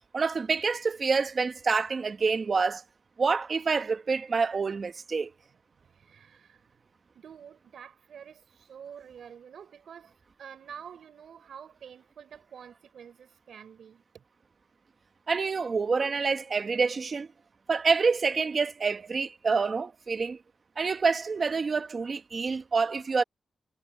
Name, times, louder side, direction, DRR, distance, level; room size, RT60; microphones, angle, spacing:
voice 1, 0.1-2.8 3.2-5.3 15.3-17.3 17.7-20.4 20.8-23.2, right 4 dB, 45° right, 1.3 m, -27 dB
voice 2, 6.0-6.6 7.2-10.1 10.4-14.2, right 8 dB, 80° right, 5.4 m, -48 dB
cardioid pair, 95°, 0 cm